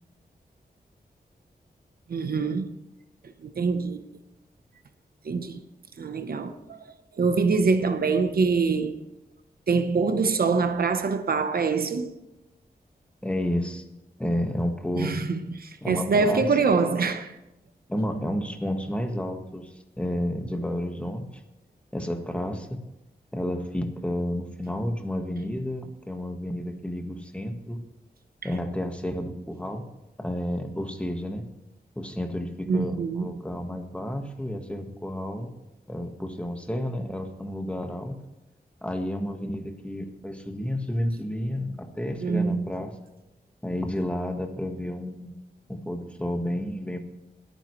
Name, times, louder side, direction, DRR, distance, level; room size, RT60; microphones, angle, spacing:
voice 1, 2.1-2.7 3.4-4.0 5.2-5.6 6.0-6.8 7.2-9.0 9.7-12.1 14.9-17.3 32.7-33.4 42.2-42.7, right 4 dB, 70° right, 1.0 m, -24 dB
voice 2, 13.2-13.8 14.2-15.2 15.8-16.5 17.9-21.4 21.9-22.8 23.3-27.8 28.4-29.8 30.2-31.4 31.9-35.5 35.9-38.2 38.8-42.9 43.6-45.3 45.7-47.0, left 1 dB, 5° left, 1.5 m, -31 dB
21.0 x 9.2 x 3.2 m
wide cardioid pair, 110°, 16 cm